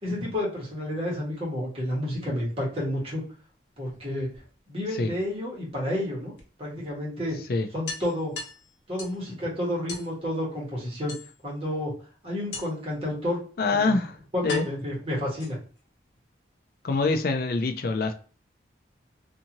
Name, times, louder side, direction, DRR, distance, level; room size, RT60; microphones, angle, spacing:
voice 1, 0.0-3.2 3.8-4.3 4.7-6.3 6.6-7.4 7.7-8.3 8.9-11.1 11.4-11.9 12.2-13.4 13.7-13.9 14.3-15.6, left 1 dB, 30° right, 1.3 m, -30 dB
sound 1, 3.7-4.9 6.4-6.5 6.9-7.0 7.3-7.4 7.9-9.3 9.9-10.1 11.1-11.6 12.5-12.9 13.8-13.9 14.5-15.8, left 3 dB, 75° left, 0.9 m, -39 dB
voice 2, 13.6-14.1 14.4-14.7 16.8-18.1, left 3 dB, 55° left, 0.4 m, -25 dB
2.7 x 2.5 x 2.9 m
head